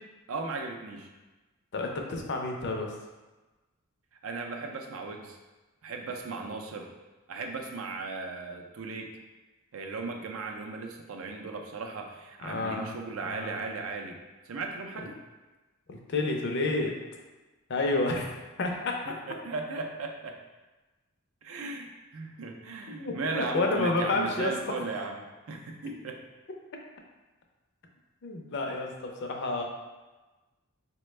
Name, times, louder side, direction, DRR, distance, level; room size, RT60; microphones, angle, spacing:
voice 1, 0.3-1.1 4.2-5.4 5.8-6.9 7.3-9.1 9.7-14.2 14.5-15.2 19.1-20.4 21.4-26.2, right 3 dB, 80° right, 3 dB, 0.5 m, -36 dB
voice 2, 1.7-2.9 12.4-12.9 13.2-13.6 15.9-17.0 17.7-19.0 22.9-24.5 28.2-29.6, left 2 dB, 55° left, 2 dB, 0.5 m, -30 dB
4.1 x 2.2 x 3.1 m, 1.2 s
head